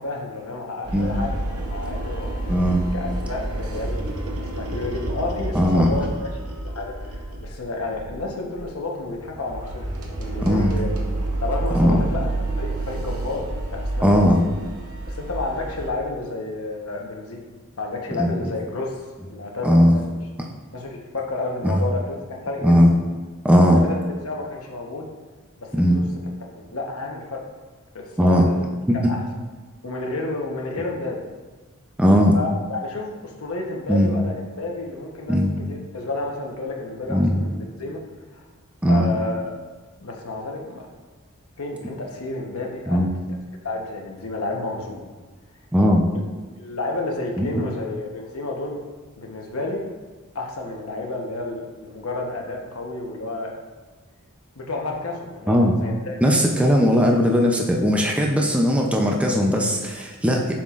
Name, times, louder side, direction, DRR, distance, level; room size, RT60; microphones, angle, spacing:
voice 1, 0.0-1.3 1.7-2.5 2.9-6.3 6.6-9.8 10.1-10.9 11.4-12.3 12.6-14.4 15.1-17.5 17.8-20.0 20.7-22.8 23.7-25.1 25.6-26.0 26.4-27.4 27.9-28.5 29.0-29.2 29.8-31.2 32.3-35.4 35.7-38.0 38.3-38.4 38.9-39.5 40.0-40.9 41.6-43.0 43.6-45.1 46.6-48.8 49.2-49.9 50.3-53.6 54.6-56.2, left 2 dB, 75° left, 0 dB, 1.0 m, -31 dB
sound 1, 0.8-7.6 7.9-8.2 8.6-8.7 9.1-15.9, right 2 dB, 80° right, 0.8 m, -29 dB
voice 2, 0.9-1.2 2.5-2.8 5.5-6.0 10.4-10.8 11.7-12.1 14.0-14.4 18.2-18.3 19.6-19.9 21.6-21.8 22.6-22.9 23.4-23.8 25.7-26.0 28.2-28.5 32.0-32.3 33.9-34.1 35.3-35.5 37.1-37.4 38.8-39.1 42.9-43.1 45.7-46.0 47.4-47.5 55.5-55.8 56.2-60.5, equal, 5° right, 0 dB, 0.5 m, -18 dB
7.3 x 5.8 x 2.5 m, 1.3 s
head